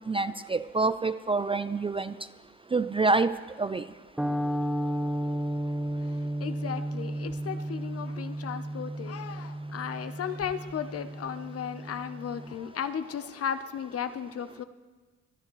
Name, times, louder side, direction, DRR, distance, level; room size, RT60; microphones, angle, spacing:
voice 1, 0.1-2.1 2.7-3.8, right 3 dB, 20° right, 12 dB, 0.3 m, -27 dB
sound 1, 4.2-12.5, right 1 dB, 5° right, 1.1 m, -33 dB
voice 2, 6.4-14.6, left 8 dB, 50° left, 11 dB, 0.8 m, -35 dB
24.0 x 11.0 x 3.2 m, 1.3 s
cardioid pair, 90°, 30 cm